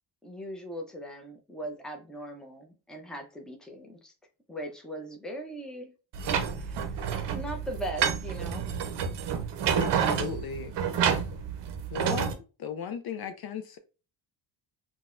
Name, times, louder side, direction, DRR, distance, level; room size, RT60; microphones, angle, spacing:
voice 1, 0.2-4.1 4.5-5.9 6.6-6.8 7.3-8.6, right 1 dB, ahead, 0.6 m, -39 dB
sound 1, 6.1-12.3, right 7 dB, 60° right, 0.7 m, -29 dB
voice 2, 9.8-10.7 11.9-13.8, left 7 dB, 50° left, 0.5 m, -36 dB
3.9 x 2.3 x 2.4 m
cardioid pair, 105°, 48 cm